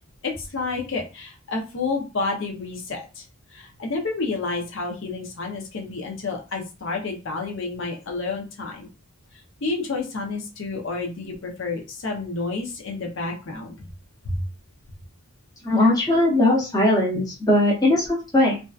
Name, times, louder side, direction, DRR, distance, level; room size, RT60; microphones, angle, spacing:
voice 1, 0.2-3.2 3.5-8.9 9.6-13.9 14.2-14.4, left 3 dB, 60° left, 0 dB, 0.6 m, -30 dB
voice 2, 15.6-18.6, left 1 dB, 15° left, -3 dB, 0.6 m, -19 dB
2.6 x 2.2 x 2.3 m, 0.30 s
head